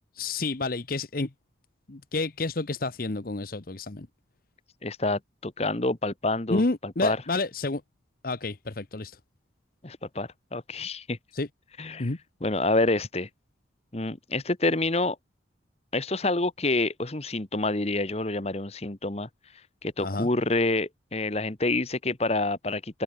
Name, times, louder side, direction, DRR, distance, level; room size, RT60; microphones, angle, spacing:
voice 1, 0.2-1.3 1.9-4.1 6.5-7.8 8.2-9.2 11.3-11.5 12.0-12.2 20.0-20.3, left 3 dB, 50° left, 1.0 m, -29 dB
voice 2, 4.8-7.2 9.8-11.2 11.8-12.1 12.4-13.3 13.9-15.2 15.9-19.3 19.8-23.0, left 2 dB, 35° left, 1.2 m, -27 dB
open air
head